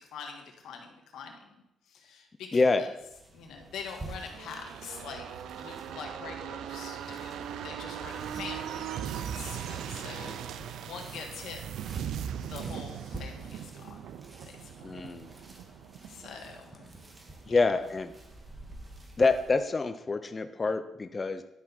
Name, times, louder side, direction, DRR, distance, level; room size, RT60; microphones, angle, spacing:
voice 1, 0.0-1.5 1.9-2.9 3.3-5.3 5.6-10.6 10.8-11.6 12.5-14.1 14.5-15.1 16.1-17.0 17.4-17.6, left 6 dB, 80° left, 2 dB, 1.6 m, -44 dB
voice 2, 2.5-2.8 14.8-15.3 17.5-18.1 19.2-21.4, left 3 dB, 30° left, 8 dB, 0.6 m, -26 dB
sound 1, 3.0-19.6, right 2 dB, 25° right, 1.5 m, -49 dB
sound 2, 4.0-17.4 17.8-17.9, right 9 dB, 80° right, 0.5 m, -39 dB
11.0 x 5.8 x 4.1 m, 0.87 s
cardioid pair, 90°, 0 cm